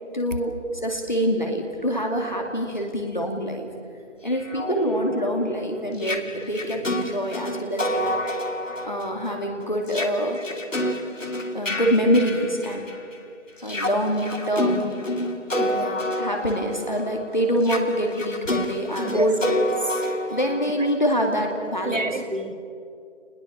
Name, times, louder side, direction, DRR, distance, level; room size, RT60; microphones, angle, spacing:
voice 1, 0.1-0.5 0.8-3.7 4.2-8.2 8.8-10.4 11.5-12.9 13.6-14.9 16.2-19.4 20.3-22.0, equal, 40° left, 1 dB, 2.5 m, -25 dB
sound 1, 4.3-13.1 13.6-21.4, left 1 dB, 85° left, 2.9 m, -29 dB
voice 2, 15.6-16.2 19.0-19.3 19.8-20.0 20.3-20.4 20.8-20.9 21.8-22.5, right 2 dB, 85° right, 7 dB, 3.0 m, -29 dB
29.5 x 20.5 x 7.2 m, 2.5 s
figure-of-eight pair, 180°, 37 cm